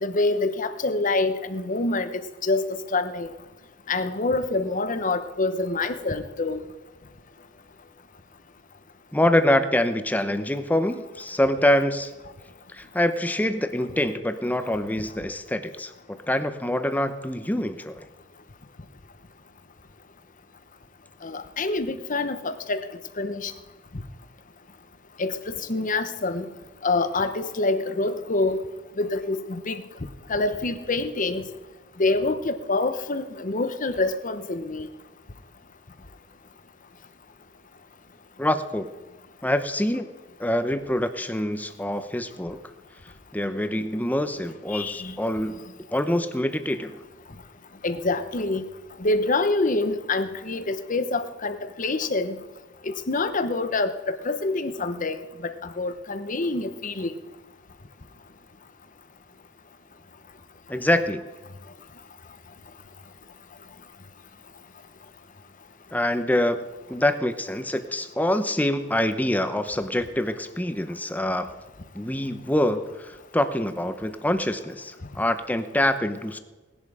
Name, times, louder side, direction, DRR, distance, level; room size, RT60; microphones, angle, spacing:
voice 1, 0.0-3.3 3.9-6.6 21.2-22.9 23.2-23.5 25.2-26.5 26.8-28.6 29.0-29.9 30.3-31.5 32.0-34.9 44.7-45.2 47.8-48.6 49.0-52.4 52.8-57.2, left 2 dB, 45° left, 10 dB, 1.0 m, -26 dB
voice 2, 9.1-12.1 12.7-18.1 38.4-38.9 39.4-40.1 40.4-42.6 43.3-45.6 45.9-47.0 60.7-61.2 65.9-71.5 71.9-76.4, left 1 dB, 10° left, 9 dB, 0.9 m, -25 dB
18.5 x 11.0 x 4.9 m, 1.2 s
head